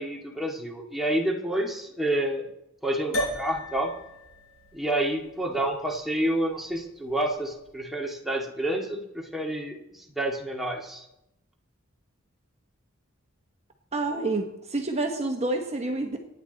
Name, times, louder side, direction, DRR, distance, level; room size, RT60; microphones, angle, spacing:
voice 1, 0.0-2.5 2.8-3.9 4.7-11.1, right 1 dB, ahead, -1 dB, 2.0 m, -29 dB
sound 1, 3.1-7.7, equal, 80° left, 7.4 m, -37 dB
voice 2, 13.9-16.2, right 2 dB, 30° right, 3 dB, 1.2 m, -28 dB
24.5 x 9.8 x 4.1 m, 0.87 s
head